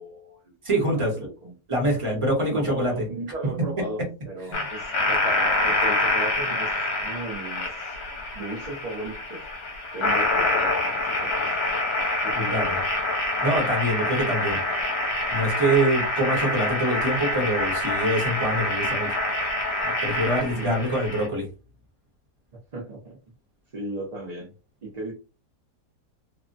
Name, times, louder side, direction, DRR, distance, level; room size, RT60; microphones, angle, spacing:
voice 1, 0.0-0.5 0.8-1.5 2.5-8.0 8.3-9.4 9.9-11.5 12.2-12.7 20.5-20.9 21.3-21.4 22.7-23.2 23.7-24.5 24.8-25.1, right 2 dB, 70° right, -1 dB, 0.3 m, -36 dB
voice 2, 0.6-1.3 1.7-3.0 4.5-4.6 12.5-12.8 13.4-14.6 15.3-19.1 20.0-21.5, right 1 dB, 25° right, -1 dB, 0.9 m, -25 dB
sound 1, 4.5-21.3, left 2 dB, 65° left, 1.2 m, -26 dB
3.2 x 2.1 x 2.6 m, 0.32 s
omnidirectional pair, 1.8 m